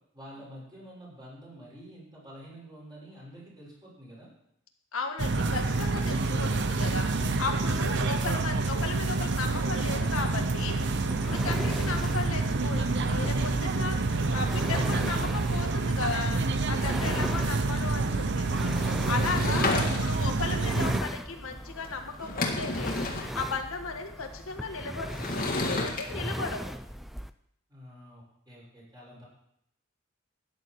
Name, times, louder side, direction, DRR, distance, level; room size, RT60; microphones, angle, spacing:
voice 1, 0.1-4.3 27.7-29.2, equal, 20° right, -6 dB, 6.2 m, -48 dB
voice 2, 4.9-26.6, left 4 dB, 85° left, 4 dB, 1.5 m, -36 dB
sound 1, 5.2-21.0, right 3 dB, 55° right, 0.8 m, -28 dB
sound 2, 10.3-27.3, equal, ahead, 0.4 m, -39 dB
Sliding door / Wood, 19.1-20.3 21.8-21.9 22.2-23.3 25.1-26.0, left 2 dB, 45° left, 1.9 m, -30 dB
13.0 x 9.6 x 4.7 m, 0.74 s
head